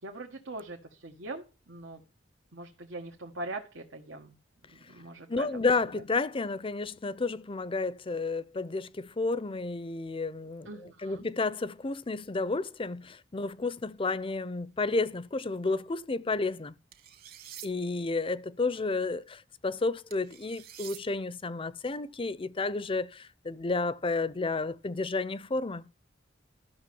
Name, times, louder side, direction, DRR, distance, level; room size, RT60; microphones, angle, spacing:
voice 1, 0.0-2.0 2.5-4.3 4.7-5.6 5.9-6.0 10.6-11.3, right 2 dB, 85° right, 1.6 m, -42 dB
voice 2, 5.3-16.7 17.6-25.9, left 3 dB, 30° left, 0.6 m, -31 dB
sound 1, 16.9-17.7 20.1-21.0, right 11 dB, 50° right, 1.9 m, -47 dB
13.0 x 6.5 x 7.0 m
head